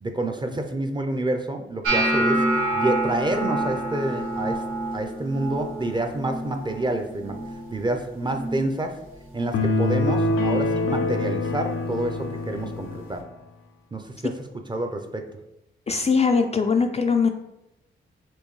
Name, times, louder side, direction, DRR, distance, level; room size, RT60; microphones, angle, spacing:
voice 1, 0.0-4.6 4.9-7.4 7.7-9.0 9.3-13.3 13.9-14.3 14.7-15.3, right 1 dB, 20° right, 5 dB, 0.5 m, -28 dB
sound 1, 1.8-7.9 8.2-8.7 9.1-9.6 10.3-10.5 12.2-12.3, right 1 dB, 75° right, 0.9 m, -27 dB
sound 2, 9.5-13.1, left 2 dB, 90° left, 0.5 m, -25 dB
voice 2, 15.9-17.3, left 5 dB, 30° left, 5 dB, 0.4 m, -21 dB
4.4 x 2.7 x 3.1 m, 0.88 s
cardioid pair, 65°, 21 cm